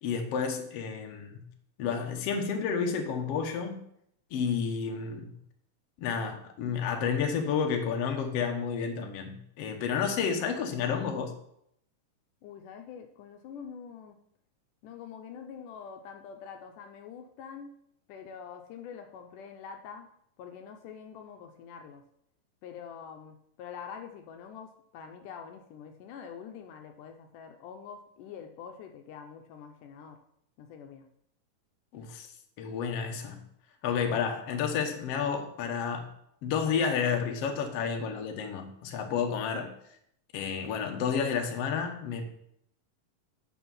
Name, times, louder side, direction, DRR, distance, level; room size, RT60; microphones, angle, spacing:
voice 1, 0.0-1.5 1.8-3.8 4.3-5.3 6.0-11.4 31.9-32.3 32.6-33.4 33.8-36.1 36.4-39.7 40.3-42.2, left 6 dB, 60° left, 3 dB, 1.8 m, -30 dB
voice 2, 12.4-14.2 14.8-17.7 18.1-20.1 20.4-22.0 22.6-30.2 30.6-31.1, left 7 dB, 75° left, 4 dB, 2.2 m, -45 dB
8.8 x 6.4 x 5.5 m, 0.72 s
omnidirectional pair, 3.8 m